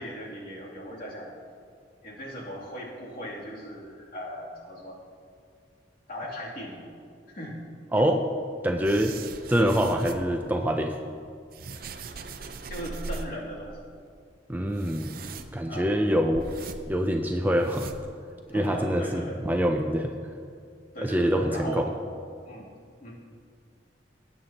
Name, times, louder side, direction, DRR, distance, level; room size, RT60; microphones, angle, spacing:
voice 1, 0.0-1.4 2.0-5.0 6.1-6.9 7.3-7.6 7.9-8.2 12.7-13.8 15.7-15.9 18.5-19.4 20.9-21.9 22.4-22.7 23.0-23.1, equal, 55° left, -5 dB, 2.8 m, -38 dB
voice 2, 7.9-8.2 8.6-9.1 9.5-11.0 14.5-15.1 15.5-16.5 16.9-17.9 18.5-20.1 21.0-21.9, equal, 10° right, 3 dB, 0.5 m, -25 dB
sound 1, 8.8-10.4 11.1-13.5 13.7-13.8 14.1-14.2 14.7-15.8 16.3-17.1 17.5-18.4 18.6-18.7 19.4-19.5 19.7-19.8, right 3 dB, 55° right, 0.6 m, -40 dB
19.5 x 9.3 x 2.9 m, 2.3 s
head